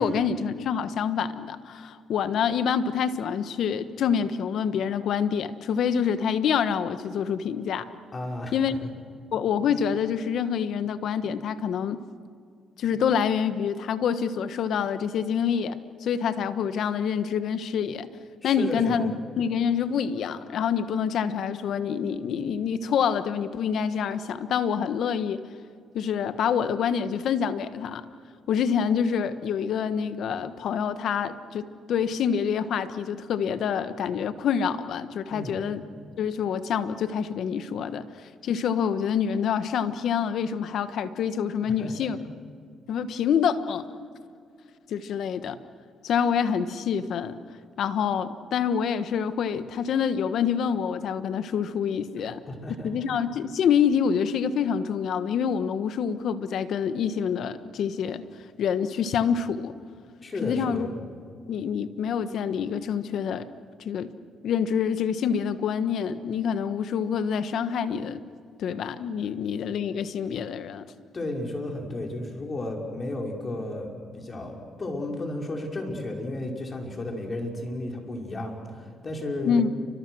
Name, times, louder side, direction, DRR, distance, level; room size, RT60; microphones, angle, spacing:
voice 1, 0.0-7.9 8.5-8.7 9.3-12.0 12.8-18.1 18.4-25.4 25.9-28.0 28.5-35.9 36.2-42.2 42.9-43.8 44.9-45.6 46.0-47.4 47.8-52.4 52.7-58.2 58.6-59.7 60.4-60.9 61.5-63.5 63.8-64.1 64.4-68.2 68.6-70.9 79.4-79.7, left 7 dB, 70° left, 11 dB, 1.4 m, -26 dB
voice 2, 8.1-8.5 18.4-19.1 35.3-35.6 41.6-41.9 52.5-52.9 60.2-61.0 71.1-79.6, left 1 dB, 35° left, 1 dB, 5.5 m, -33 dB
29.5 x 25.5 x 6.4 m, 2.3 s
cardioid pair, 90°, 0 cm